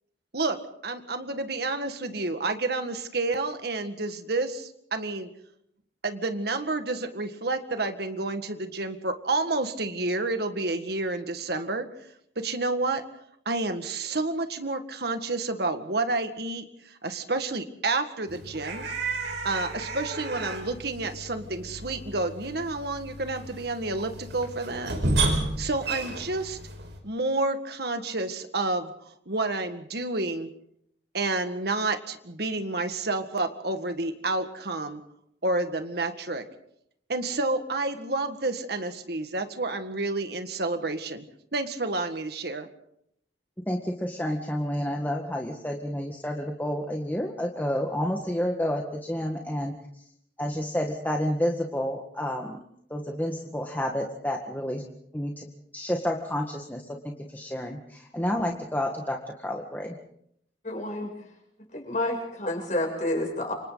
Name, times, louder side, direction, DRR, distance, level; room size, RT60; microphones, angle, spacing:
voice 1, 0.8-5.3 6.0-11.9 12.4-13.0 13.5-18.9 19.4-24.9 25.2-26.6 27.0-28.9 29.3-30.5 31.1-35.0 35.4-36.4 37.1-41.2 41.5-42.7, right 2 dB, 65° right, 7 dB, 1.9 m, -29 dB
sound 1, 18.3-27.0, right 2 dB, 85° right, 5.4 m, -32 dB
voice 2, 43.7-49.7 50.4-52.6 52.9-54.8 55.1-55.5 55.7-60.0, equal, 10° left, 1 dB, 1.7 m, -30 dB
voice 3, 60.6-61.1 61.7-63.5, left 1 dB, 45° left, 0 dB, 7.6 m, -29 dB
29.5 x 26.0 x 4.1 m, 0.73 s
head